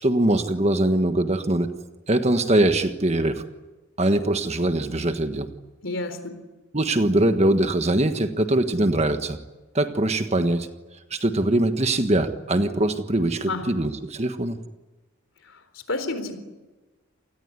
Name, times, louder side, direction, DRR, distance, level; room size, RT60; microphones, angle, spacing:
voice 1, 0.0-1.7 2.1-3.4 4.0-5.5 6.7-9.4 9.7-10.7 11.1-14.6, right 1 dB, 30° right, 8 dB, 1.4 m, -22 dB
voice 2, 5.8-6.4 13.5-13.7 15.5-15.6 15.9-16.4, left 2 dB, 65° left, 10 dB, 4.0 m, -29 dB
28.5 x 19.5 x 9.7 m, 1.2 s
head